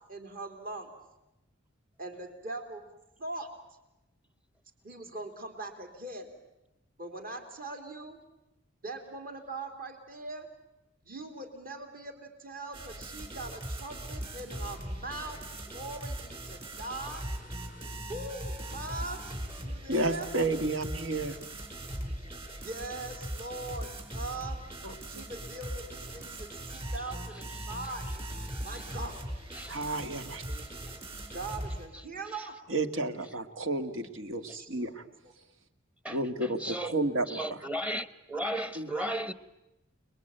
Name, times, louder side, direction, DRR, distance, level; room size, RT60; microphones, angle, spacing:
voice 1, 0.1-0.9 2.0-2.8 3.2-3.5 4.8-6.3 7.0-8.2 8.8-10.5 11.0-17.3 18.1-19.2 19.6-20.3 22.3-24.6 25.1-28.1 28.6-29.1 30.5-31.0 31.3-32.6 34.3-34.9 35.2-35.3, right 2 dB, 45° right, 3.4 m, -41 dB
sound 1, 12.7-31.9, right 1 dB, 30° right, 4.8 m, -40 dB
voice 2, 19.9-21.4 24.8-24.9 29.7-30.4 32.7-35.0 36.1-37.6 38.8-38.9, right 2 dB, 70° right, 1.9 m, -31 dB
voice 3, 36.6-36.9 37.3-39.3, right 1 dB, 5° right, 1.0 m, -34 dB
29.5 x 21.5 x 9.1 m
head